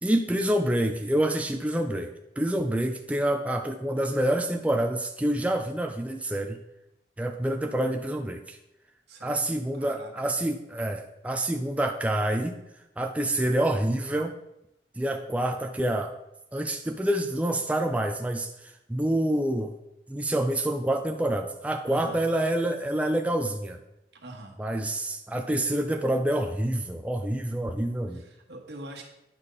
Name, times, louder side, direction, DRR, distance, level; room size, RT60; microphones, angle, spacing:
voice 1, 0.0-6.6 7.2-8.6 9.2-12.6 13.0-14.3 15.0-16.2 16.5-19.7 20.1-23.8 24.6-28.2, right 1 dB, 10° right, 4 dB, 0.4 m, -27 dB
voice 2, 9.1-9.4 9.8-10.1 21.9-22.2 24.1-24.6 28.1-29.0, right 1 dB, 75° right, 0 dB, 1.5 m, -43 dB
9.9 x 5.3 x 4.0 m, 0.89 s
head